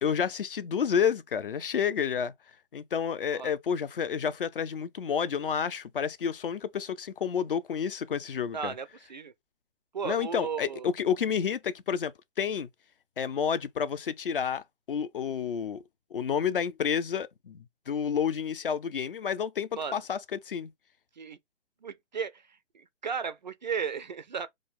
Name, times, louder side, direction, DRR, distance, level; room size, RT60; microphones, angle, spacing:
voice 1, 0.0-2.3 2.7-8.7 10.0-12.1 12.4-12.7 13.2-15.8 16.1-20.7, left 7 dB, 50° left, 0.5 m, -30 dB
voice 2, 8.5-9.3 9.9-10.9 19.7-20.0 21.2-21.4 21.8-24.5, right 6 dB, 40° right, 0.4 m, -35 dB
4.8 x 2.1 x 3.5 m
figure-of-eight pair, 135°, 35 cm